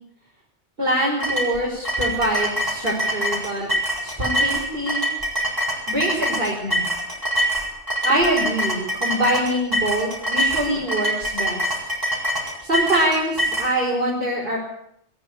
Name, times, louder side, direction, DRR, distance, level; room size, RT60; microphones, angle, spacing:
voice 1, 0.8-3.7 4.0-5.0 5.9-6.9 8.0-11.7 12.6-14.6, right 1 dB, 50° right, -5 dB, 5.7 m, -24 dB
sound 1, 1.2-13.7, equal, 15° right, 7.4 m, -24 dB
22.0 x 13.0 x 9.8 m, 0.73 s
omnidirectional pair, 1.2 m